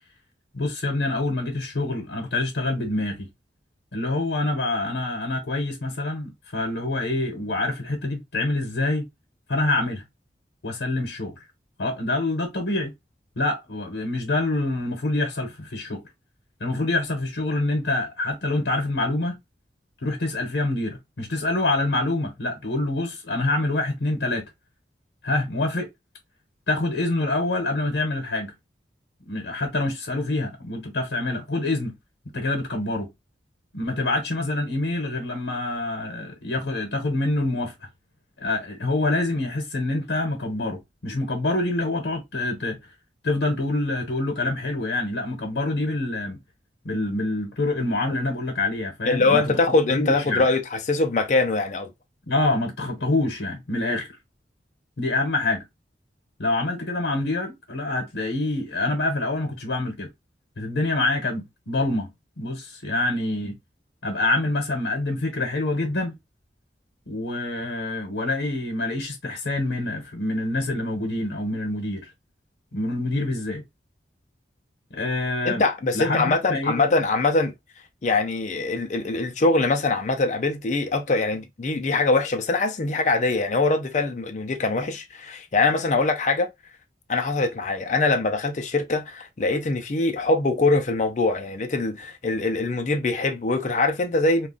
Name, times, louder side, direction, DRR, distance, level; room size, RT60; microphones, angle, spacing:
voice 1, 0.5-3.3 3.9-9.1 9.5-10.0 10.6-11.3 11.8-12.9 13.4-16.0 16.6-19.4 20.0-24.5 25.2-25.9 26.7-28.5 29.3-32.0 32.3-33.1 33.7-37.7 38.4-42.8 43.2-46.4 46.8-49.6 49.9-50.5 52.3-54.1 55.0-55.6 56.4-60.1 60.6-62.1 62.4-63.6 64.0-66.2 67.1-72.1 72.7-73.6 74.9-75.7 75.9-76.9, left 2 dB, 80° left, 0.8 m, -26 dB
voice 2, 49.1-51.9 75.4-77.5 78.0-86.5 87.1-94.5, left 3 dB, 40° left, 0.4 m, -23 dB
2.4 x 2.2 x 3.6 m
head